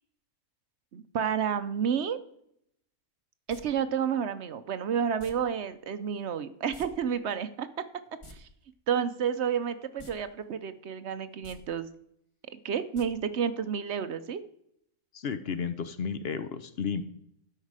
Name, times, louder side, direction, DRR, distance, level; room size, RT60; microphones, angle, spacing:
voice 1, 0.9-2.2 3.5-7.7 8.3-8.5 8.9-11.9 12.6-14.4, right 7 dB, 60° right, 12 dB, 0.8 m, -30 dB
sound 1, 3.5-3.6 5.2-5.3 6.7-6.9 7.1-7.2 8.1-8.3 10.0-10.1 10.5-10.6 11.3-11.6 12.9-13.1 13.4-13.5, left 1 dB, 25° left, 1.0 m, -48 dB
voice 2, 15.1-17.0, left 6 dB, 55° left, 11 dB, 0.7 m, -33 dB
12.5 x 5.8 x 4.8 m, 0.72 s
omnidirectional pair, 1.5 m